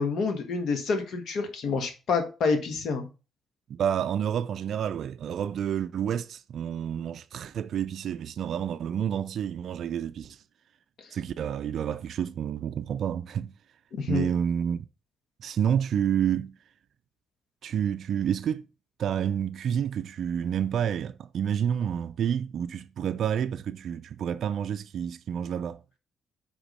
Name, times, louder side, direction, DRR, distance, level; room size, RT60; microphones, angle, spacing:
voice 1, 0.0-3.1 13.9-14.3, left 4 dB, 65° left, 1.3 m, -28 dB
voice 2, 3.7-10.4 11.1-13.5 14.1-14.9 15.4-16.6 17.6-18.7 19.0-25.8, right 8 dB, 65° right, 0.3 m, -29 dB
5.1 x 3.5 x 5.2 m
cardioid pair, 90°, 0 cm